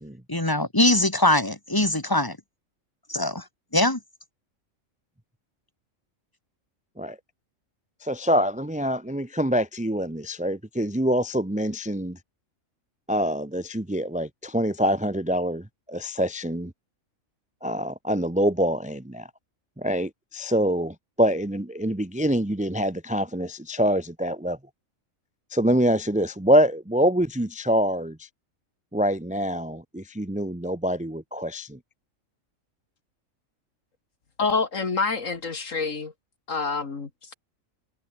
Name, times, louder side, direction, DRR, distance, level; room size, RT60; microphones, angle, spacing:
voice 1, 0.3-2.4 3.1-3.4 3.7-4.0, left 1 dB, 15° left, 3.1 m, -22 dB
voice 2, 8.0-12.2 13.1-16.7 17.6-19.3 19.8-24.6 25.5-28.3 28.9-31.8, equal, 5° right, 1.0 m, -25 dB
voice 3, 34.4-36.1 36.5-37.3, left 4 dB, 70° left, 2.6 m, -27 dB
omnidirectional pair, 1.4 m